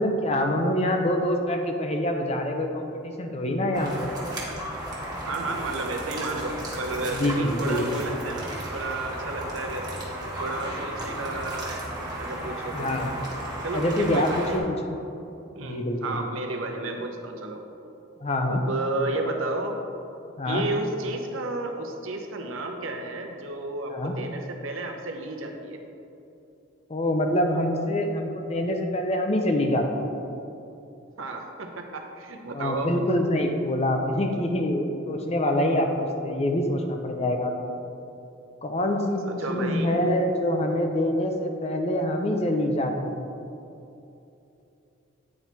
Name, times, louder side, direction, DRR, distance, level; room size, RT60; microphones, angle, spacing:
voice 1, 0.0-4.1 7.1-8.0 12.7-13.1 13.7-15.0 15.6-16.2 18.2-18.6 20.4-20.6 23.9-24.1 26.9-30.1 32.5-37.5 38.6-43.3, left 1 dB, 30° left, 3 dB, 0.6 m, -25 dB
sound 1, 3.7-14.6, right 1 dB, 20° right, 1.2 m, -34 dB
voice 2, 5.3-9.9 10.4-11.8 12.2-12.9 13.6-14.6 15.6-17.6 18.4-19.8 20.5-25.8 31.2-32.9 39.2-39.9, right 2 dB, 75° right, 3 dB, 0.8 m, -32 dB
8.6 x 4.2 x 4.5 m, 2.8 s
head